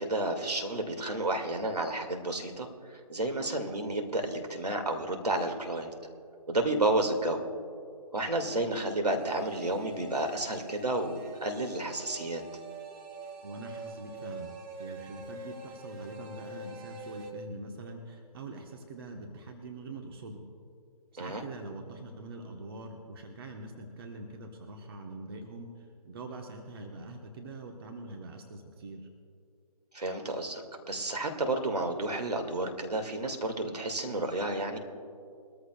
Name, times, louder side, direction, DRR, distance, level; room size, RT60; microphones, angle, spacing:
voice 1, 0.0-5.9 6.5-7.4 8.1-12.4 21.2-21.4 29.9-34.8, right 2 dB, 75° right, 3 dB, 2.2 m, -31 dB
sound 1, 9.2-17.3, right 2 dB, 15° right, 0.8 m, -45 dB
voice 2, 13.4-14.5 14.8-20.4 21.1-25.7 26.0-29.1, right 2 dB, 35° right, 3 dB, 1.2 m, -43 dB
22.0 x 14.0 x 2.4 m, 2.4 s
figure-of-eight pair, 145°, 20 cm